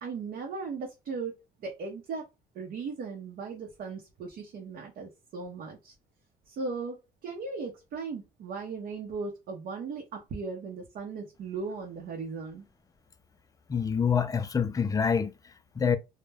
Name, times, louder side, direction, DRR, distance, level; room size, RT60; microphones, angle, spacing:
voice 1, 0.0-2.3 2.5-5.9 6.5-12.7, right 4 dB, 60° right, 0.7 m, -37 dB
voice 2, 13.7-16.0, left 6 dB, 20° left, 0.3 m, -27 dB
2.2 x 2.1 x 3.2 m
cardioid pair, 90°, 17 cm